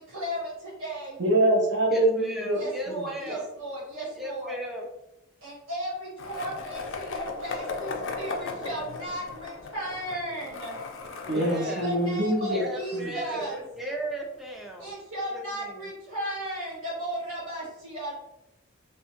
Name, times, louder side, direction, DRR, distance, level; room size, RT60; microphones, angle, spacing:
voice 1, 0.0-1.2 2.5-4.6 5.4-10.8 11.5-13.6 14.8-18.2, right 1 dB, 80° right, -7 dB, 1.2 m, -35 dB
voice 2, 1.2-2.6 2.9-3.0 11.3-12.6 12.9-13.1, right 1 dB, 55° right, -1 dB, 0.5 m, -24 dB
voice 3, 1.9-3.4 4.2-4.9 11.3-11.9 12.5-14.9 15.3-15.9, right 1 dB, ahead, -1 dB, 0.3 m, -36 dB
Skateboard, 6.2-14.1, left 4 dB, 70° left, 0.4 m, -38 dB
2.7 x 2.1 x 2.8 m, 0.87 s
head